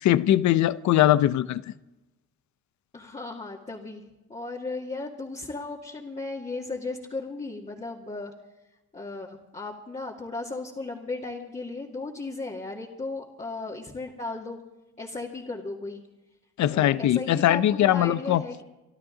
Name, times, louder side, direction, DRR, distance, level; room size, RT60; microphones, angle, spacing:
voice 1, 0.0-1.6 16.6-18.4, left 12 dB, 70° left, 0.7 m, -21 dB
voice 2, 2.9-4.0 4.3-8.3 8.9-14.6 15.0-16.0 16.7-18.6, left 3 dB, 25° left, 2.2 m, -36 dB
25.0 x 12.5 x 3.9 m
cardioid pair, 90°, 30 cm